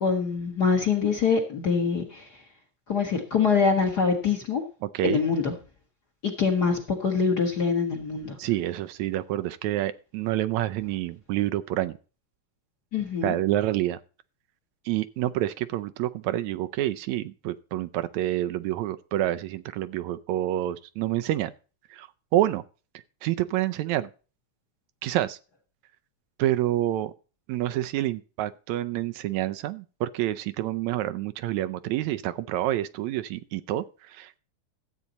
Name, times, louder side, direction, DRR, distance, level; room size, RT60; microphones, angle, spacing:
voice 1, 0.0-2.3 2.9-4.6 5.0-5.5 6.2-8.4 12.9-13.3, left 5 dB, 45° left, 3 dB, 1.6 m, -24 dB
voice 2, 4.8-5.2 8.4-12.0 13.2-14.0 14.9-21.5 21.9-22.1 22.3-22.6 23.2-24.1 25.0-25.4 26.4-27.1 27.5-34.4, right 14 dB, 80° right, 11 dB, 1.9 m, -28 dB
13.5 x 8.4 x 4.1 m, 0.35 s
omnidirectional pair, 3.4 m